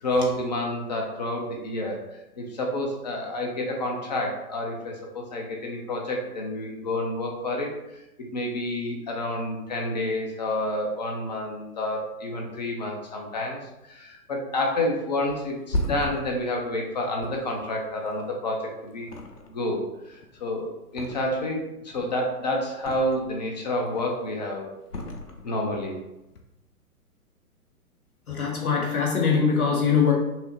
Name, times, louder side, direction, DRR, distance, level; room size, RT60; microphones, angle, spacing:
voice 1, 0.0-7.7 8.2-19.1 19.5-24.7 25.4-26.0, left 1 dB, 30° left, 0 dB, 0.5 m, -29 dB
Thump thud, 15.3-18.6 19.0-19.8 20.1-21.6 21.9-23.4 23.8-24.3 24.9-25.9 26.2-26.4, left 1 dB, 90° left, 0.7 m, -36 dB
voice 2, 28.3-30.1, left 6 dB, 70° left, -2 dB, 1.3 m, -22 dB
5.4 x 2.0 x 2.8 m, 0.93 s
figure-of-eight pair, 115°, 45 cm